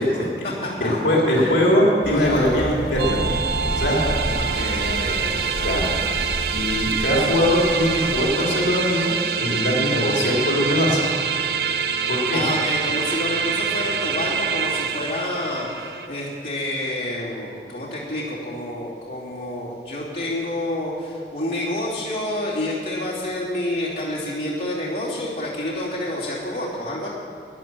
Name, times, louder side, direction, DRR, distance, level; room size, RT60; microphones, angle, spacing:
voice 1, 0.0-1.6 2.2-2.6 3.8-5.9 12.3-27.1, left 1 dB, 65° left, -7 dB, 3.0 m, -29 dB
voice 2, 0.8-3.3 3.7-4.0 5.6-5.8 6.5-9.1 9.4-11.0 12.1-12.4, left 1 dB, 85° left, -3 dB, 3.2 m, -21 dB
sound 1, 2.0-8.2, equal, 45° left, 2.8 m, -30 dB
sound 2, 3.0-16.1, right 6 dB, 60° right, 0.7 m, -25 dB
13.5 x 10.0 x 7.6 m, 2.4 s
head